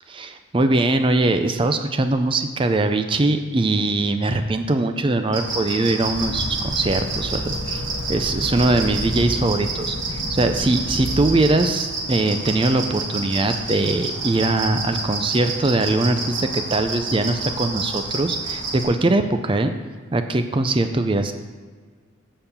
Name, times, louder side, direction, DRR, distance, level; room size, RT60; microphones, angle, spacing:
voice 1, 0.1-7.8 8.1-19.7 20.1-21.3, right 2 dB, 25° right, 8 dB, 0.4 m, -21 dB
sound 1, 5.3-18.8, right 3 dB, 65° right, 1.6 m, -29 dB
sound 2, 6.0-11.6, left 1 dB, 60° left, 1.1 m, -31 dB
6.8 x 5.5 x 6.8 m, 1.5 s
head